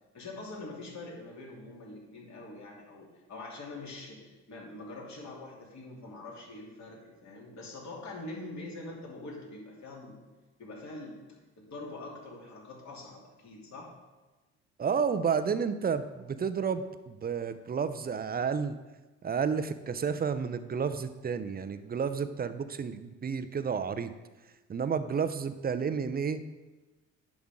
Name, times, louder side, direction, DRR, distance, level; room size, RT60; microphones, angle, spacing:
voice 1, 0.1-10.2 10.6-11.2 11.6-13.9, left 2 dB, 45° left, -3 dB, 3.0 m, -44 dB
voice 2, 14.8-18.8 19.2-24.1 24.7-26.4, right 6 dB, 25° right, 11 dB, 0.7 m, -31 dB
10.5 x 6.0 x 3.7 m, 1.2 s
hypercardioid pair, 55°, 39 cm